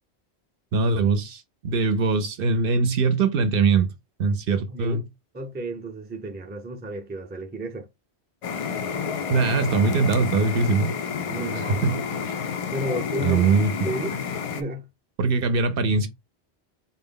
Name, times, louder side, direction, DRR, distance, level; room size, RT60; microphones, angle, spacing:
voice 1, 0.7-3.9 4.2-5.0 9.3-10.9 11.8-12.0 13.2-13.7 15.2-16.1, right 4 dB, 65° right, 0.7 m, -22 dB
voice 2, 4.5-5.0 5.3-7.9 11.3-11.9 12.7-13.5 13.8-14.2 14.5-14.9, right 1 dB, 15° right, 0.4 m, -32 dB
sound 1, 8.4-14.6, left 6 dB, 60° left, 0.3 m, -30 dB
4.0 x 2.0 x 3.7 m
omnidirectional pair, 1.1 m